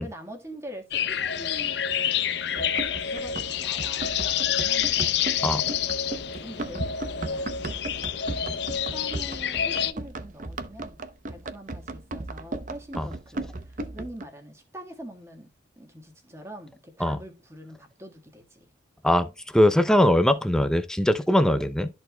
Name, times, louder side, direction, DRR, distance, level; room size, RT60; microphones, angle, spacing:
voice 1, 0.0-5.2 6.2-7.6 7.9-8.4 8.9-11.0 11.3-15.5 15.8-18.7, equal, 15° right, 1.5 m, -44 dB
sound 1, 0.9-9.9, left 9 dB, 65° left, 0.6 m, -28 dB
Run, 2.5-14.2, right 2 dB, 45° right, 0.7 m, -36 dB
voice 2, 19.0-21.9, left 1 dB, 5° left, 0.5 m, -21 dB
13.0 x 4.4 x 2.2 m
head